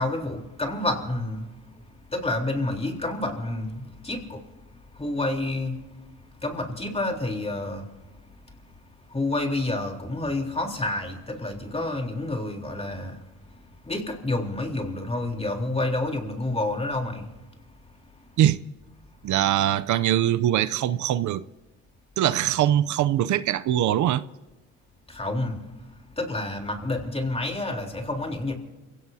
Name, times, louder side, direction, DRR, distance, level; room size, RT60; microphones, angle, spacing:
voice 1, 0.0-1.5 2.1-4.4 4.9-5.8 6.3-7.9 9.1-13.2 13.5-13.6 13.8-17.3 25.1-25.6 26.2-28.6, left 2 dB, 20° left, 3.7 m, -29 dB
voice 2, 19.2-21.4 22.2-24.2, right 12 dB, 75° right, 0.6 m, -22 dB
29.0 x 17.0 x 2.8 m
cardioid pair, 90°, 30 cm